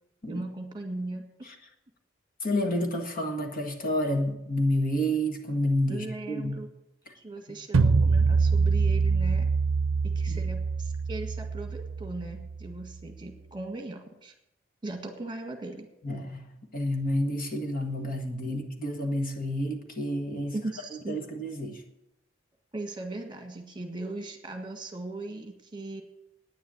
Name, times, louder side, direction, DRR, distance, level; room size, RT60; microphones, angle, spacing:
voice 1, 0.3-1.3 5.9-6.7 7.1-9.5 10.0-14.3 14.8-15.9 18.5-18.6 20.5-21.2 22.7-26.0, right 2 dB, 25° right, 4 dB, 1.7 m, -38 dB
voice 2, 2.4-6.6 7.1-7.2 10.3-10.4 16.0-20.6 21.1-21.8, equal, 45° left, 4 dB, 1.7 m, -29 dB
sound 1, 7.7-12.8, right 4 dB, 75° right, 0.6 m, -25 dB
10.0 x 9.5 x 8.8 m, 0.86 s
head